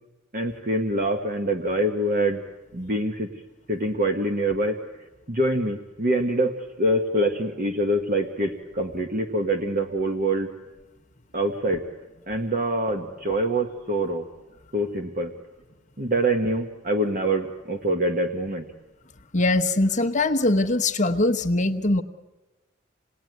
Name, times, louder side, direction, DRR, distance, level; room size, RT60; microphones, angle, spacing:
voice 1, 0.3-2.4 2.7-3.3 3.7-4.8 5.3-10.5 11.3-11.8 12.3-14.2 14.7-15.3 16.0-18.6, right 1 dB, 40° right, 4 dB, 1.4 m, -25 dB
voice 2, 19.3-22.0, left 2 dB, 35° left, 5 dB, 1.1 m, -22 dB
27.5 x 19.0 x 9.4 m, 1.2 s
head